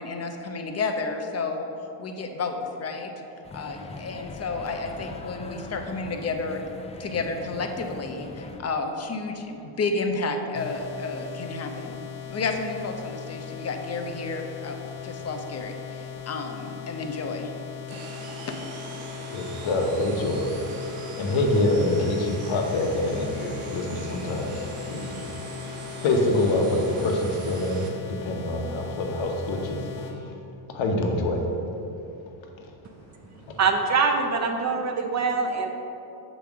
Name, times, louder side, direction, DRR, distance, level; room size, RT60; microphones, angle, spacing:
voice 1, 0.0-1.7 2.0-3.1 3.5-6.6 7.0-12.0 12.3-17.5 17.9-18.0 18.5-18.6, left 3 dB, 30° left, 5 dB, 0.7 m, -31 dB
sound 1, 3.4-8.6, left 2 dB, 15° left, 0.3 m, -41 dB
sound 2, 10.5-30.2, left 7 dB, 90° left, 0.8 m, -39 dB
sound 3, 17.9-27.9, right 3 dB, 85° right, 1.0 m, -41 dB
voice 2, 19.3-20.5 21.2-25.2 26.0-30.3 30.7-31.4, left 1 dB, 70° left, 2 dB, 1.0 m, -26 dB
voice 3, 33.6-35.7, right 4 dB, 35° right, 4 dB, 0.5 m, -24 dB
6.9 x 3.1 x 6.0 m, 2.8 s
cardioid pair, 90°, 49 cm